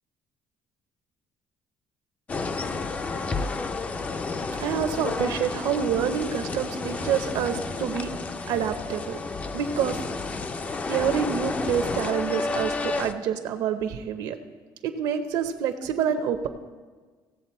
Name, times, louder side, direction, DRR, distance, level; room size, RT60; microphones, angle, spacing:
sound 1, 2.3-13.1, left 3 dB, 20° left, 0.4 m, -31 dB
voice 1, 4.6-8.1 8.5-9.2 9.5-10.0 10.9-14.4 14.8-16.5, right 8 dB, 70° right, 7 dB, 0.8 m, -27 dB
16.5 x 7.6 x 4.3 m, 1.4 s
cardioid pair, 175°, 8 cm